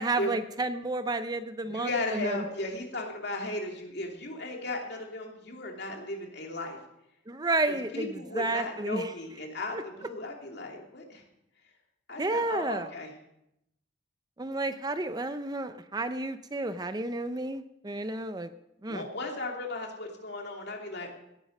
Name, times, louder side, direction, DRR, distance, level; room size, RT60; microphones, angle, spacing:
voice 1, 0.0-2.4 7.3-9.1 9.7-9.8 12.2-12.9 14.4-18.5 18.8-19.0, right 2 dB, 20° right, 10 dB, 0.5 m, -31 dB
voice 2, 1.6-6.8 7.6-11.2 12.1-13.1 18.9-21.1, left 2 dB, 55° left, 1 dB, 2.7 m, -36 dB
17.5 x 10.0 x 5.3 m, 0.82 s
head